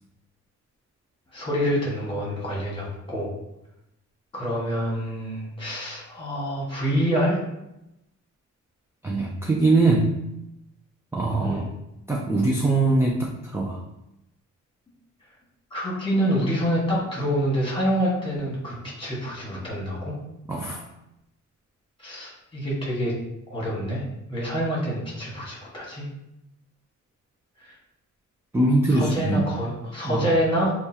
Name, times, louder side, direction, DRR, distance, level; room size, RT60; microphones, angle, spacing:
voice 1, 1.3-3.3 4.3-7.4 11.4-11.7 15.7-20.1 22.0-23.1 23.5-24.0 24.3-26.0 28.9-30.7, equal, 15° left, -5 dB, 1.5 m, -26 dB
voice 2, 9.0-10.1 11.1-11.7 12.1-13.8 20.5-20.8 28.5-29.5 30.0-30.3, right 2 dB, 10° right, -1 dB, 0.4 m, -22 dB
6.4 x 2.4 x 2.8 m, 0.87 s
wide cardioid pair, 145°, 31 cm